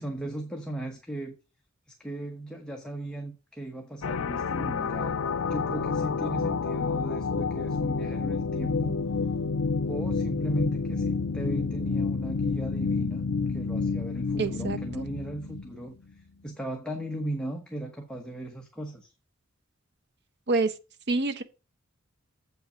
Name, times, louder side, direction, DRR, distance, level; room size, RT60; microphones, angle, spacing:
voice 1, 0.0-1.3 2.0-5.2 5.5-9.2 9.9-19.1, right 1 dB, 5° left, 1.1 m, -37 dB
sound 1, 4.0-15.8, left 4 dB, 80° left, 0.5 m, -29 dB
voice 2, 14.4-14.8 20.5-20.7 21.1-21.4, right 3 dB, 55° right, 0.9 m, -26 dB
7.9 x 5.7 x 5.1 m
head